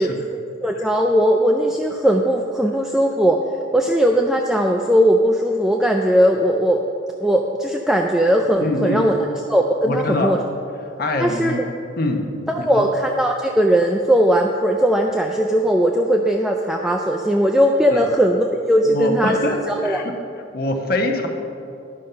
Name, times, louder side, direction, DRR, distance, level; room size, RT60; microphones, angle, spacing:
voice 1, 0.0-3.4 3.7-6.8 7.2-10.4 11.2-11.5 12.5-19.4 19.7-20.0, equal, 5° right, 1 dB, 0.3 m, -18 dB
voice 2, 8.6-9.0 9.8-10.4 11.0-11.7 12.0-12.3 12.6-12.9 17.9-18.0 18.8-20.2 20.5-21.3, left 1 dB, 50° left, 3 dB, 0.9 m, -24 dB
11.0 x 5.3 x 5.6 m, 2.7 s
head